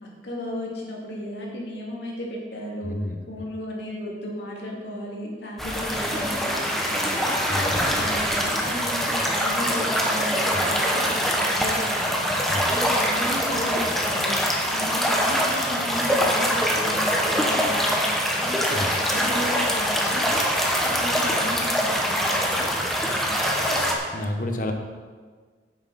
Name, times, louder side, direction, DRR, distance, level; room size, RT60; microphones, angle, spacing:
voice 1, 0.0-3.0 3.3-7.3 7.8-12.2 12.7-18.5 18.9-20.3 20.9-22.7 23.0-23.6, equal, 75° left, -3 dB, 2.5 m, -35 dB
voice 2, 2.8-3.5 7.5-7.8 10.5-10.8 12.5-12.8 18.7-19.0 24.1-24.7, left 1 dB, 50° left, 4 dB, 1.0 m, -31 dB
sound 1, 5.6-24.0, equal, ahead, 1.1 m, -24 dB
9.6 x 8.4 x 4.2 m, 1.5 s
head